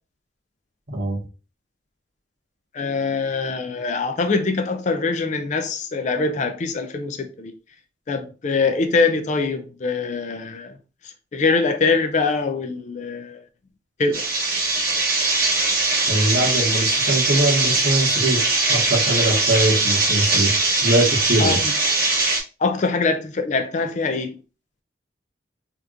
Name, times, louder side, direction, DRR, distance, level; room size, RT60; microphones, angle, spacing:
voice 1, 2.7-7.5 8.1-10.7 11.3-13.4 14.0-14.2 21.4-21.6 22.6-24.4, left 4 dB, 40° left, 0.4 m, -23 dB
sound 1, 14.1-22.4, right 3 dB, 50° right, 1.0 m, -21 dB
voice 2, 16.1-18.4 18.7-20.5 20.8-21.6, right 1 dB, 65° right, 1.4 m, -21 dB
3.4 x 2.9 x 2.5 m
head